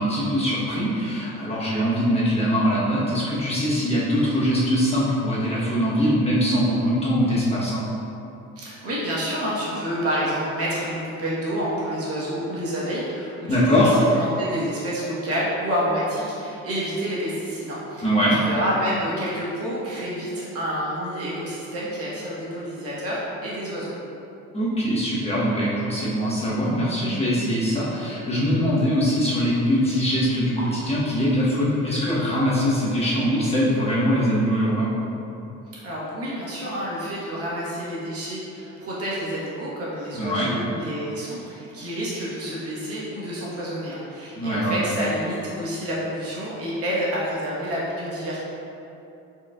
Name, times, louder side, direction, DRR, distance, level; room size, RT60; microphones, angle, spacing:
voice 1, 0.0-7.8 13.5-13.9 18.0-18.4 24.5-34.9 40.1-40.5 44.3-44.9, equal, 20° left, -9 dB, 1.1 m, -22 dB
voice 2, 8.6-13.9 14.2-23.9 35.8-48.4, equal, 50° right, -7 dB, 1.4 m, -28 dB
4.6 x 4.1 x 2.4 m, 2.9 s
cardioid pair, 100°, 31 cm